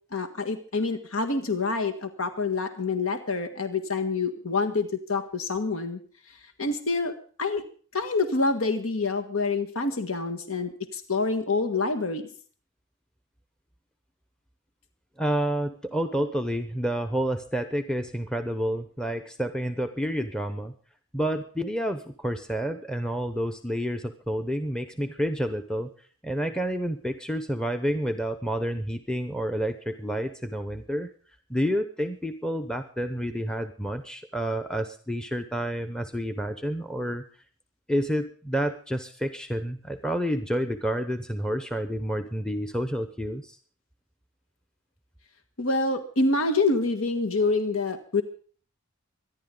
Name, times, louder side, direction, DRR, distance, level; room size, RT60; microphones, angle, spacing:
voice 1, 0.1-6.0 6.6-7.1 7.4-7.6 7.9-12.3 45.6-48.2, left 3 dB, 85° left, 6 dB, 1.6 m, -27 dB
voice 2, 15.2-20.7 21.1-25.9 26.2-31.1 31.5-37.2 37.9-43.6, equal, 5° left, 9 dB, 0.7 m, -29 dB
24.5 x 11.0 x 3.8 m, 0.44 s
head